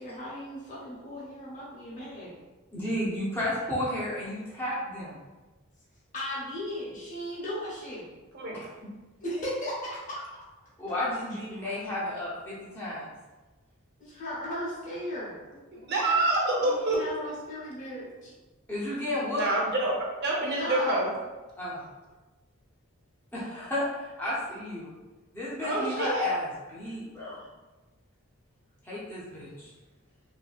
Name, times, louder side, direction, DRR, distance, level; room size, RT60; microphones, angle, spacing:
voice 1, 0.0-2.4 6.1-8.1 9.2-10.2 14.0-15.4 16.6-18.3 20.4-21.0, equal, 35° left, -8 dB, 0.9 m, -36 dB
voice 2, 2.7-5.2 8.5-8.7 10.8-13.1 18.7-19.5 21.6-21.8 23.3-24.9 25.3-27.4 28.8-29.7, left 1 dB, 10° left, -8 dB, 0.5 m, -32 dB
voice 3, 15.7-17.0 19.3-19.9 20.2-21.1 25.6-26.3, right 2 dB, 50° right, -3 dB, 0.7 m, -27 dB
2.7 x 2.6 x 2.3 m, 1.2 s
head